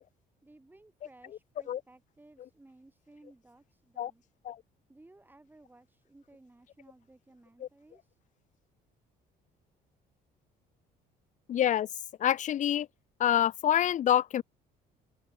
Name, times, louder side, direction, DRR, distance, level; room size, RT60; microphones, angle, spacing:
voice 1, 0.4-4.2 4.9-8.2, right 2 dB, 10° right, 6.7 m, -58 dB
voice 2, 11.5-11.9 12.2-12.9 13.2-14.4, left 11 dB, 45° left, 0.7 m, -26 dB
open air
cardioid pair, 110°, 17 cm